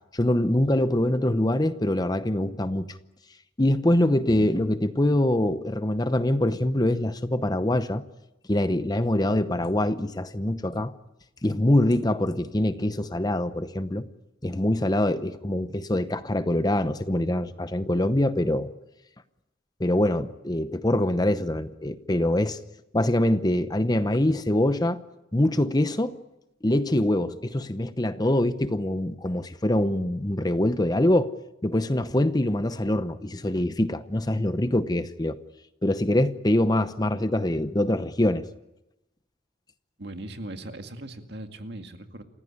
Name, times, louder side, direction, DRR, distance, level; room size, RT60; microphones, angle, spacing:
voice 1, 0.1-3.0 3.6-8.0 8.5-10.9 11.4-14.1 14.4-18.7 19.8-22.6 22.9-25.0 25.3-26.2 26.6-31.3 31.6-35.4 35.8-38.4, left 1 dB, 20° left, 12 dB, 0.8 m, -24 dB
voice 2, 4.3-4.6 40.0-42.2, right 1 dB, 60° right, 6 dB, 2.2 m, -38 dB
28.5 x 16.0 x 10.0 m, 0.94 s
head